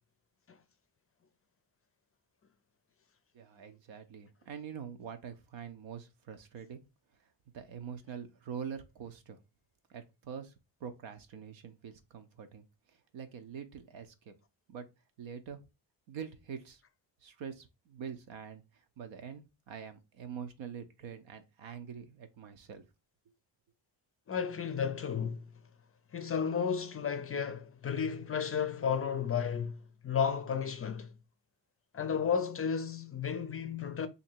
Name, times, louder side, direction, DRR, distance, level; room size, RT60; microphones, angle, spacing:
voice 1, 3.3-6.8 7.5-9.4 9.9-10.5 10.8-12.6 13.1-14.3 14.7-14.9 15.2-15.6 16.1-16.8 17.2-18.6 19.0-22.8, right 7 dB, 80° right, 0.8 m, -44 dB
voice 2, 24.3-25.4 26.1-29.8 30.0-31.1 31.9-34.1, left 7 dB, 35° left, 0.4 m, -33 dB
2.9 x 2.7 x 4.4 m
cardioid pair, 95°, 45 cm